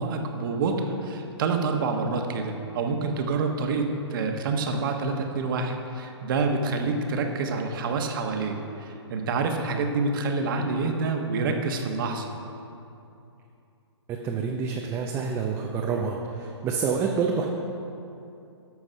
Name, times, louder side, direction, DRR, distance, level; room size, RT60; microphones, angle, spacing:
voice 1, 0.0-12.3, right 4 dB, 45° right, 4 dB, 1.2 m, -27 dB
voice 2, 14.1-17.4, right 5 dB, 15° right, 0 dB, 0.6 m, -28 dB
13.0 x 4.7 x 5.5 m, 2.7 s
hypercardioid pair, 140°, 15 cm